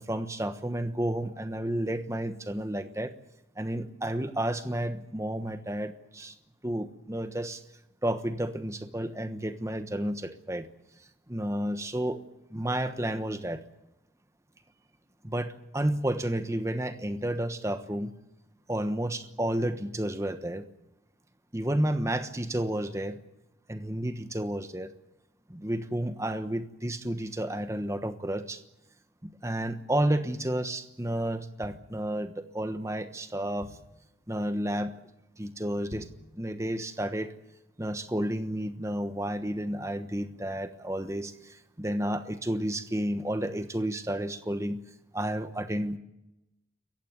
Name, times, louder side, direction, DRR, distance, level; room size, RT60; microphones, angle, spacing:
voice 1, 0.0-3.1 3.6-6.3 6.6-7.6 8.0-10.7 11.3-12.2 12.5-13.6 15.2-18.1 18.7-20.7 21.5-23.2 23.7-24.9 25.5-28.6 29.2-33.8 34.3-34.9 35.4-36.1 36.3-37.3 37.8-44.8 45.1-46.0, right 1 dB, 15° right, 10 dB, 1.2 m, -31 dB
sound 1, 31.6-32.6 33.1-33.2 33.3-34.1 34.6-34.8 35.1-35.2 35.7-36.4 36.8-36.9, equal, 40° right, 3.7 m, -48 dB
27.0 x 15.0 x 9.6 m, 0.94 s
head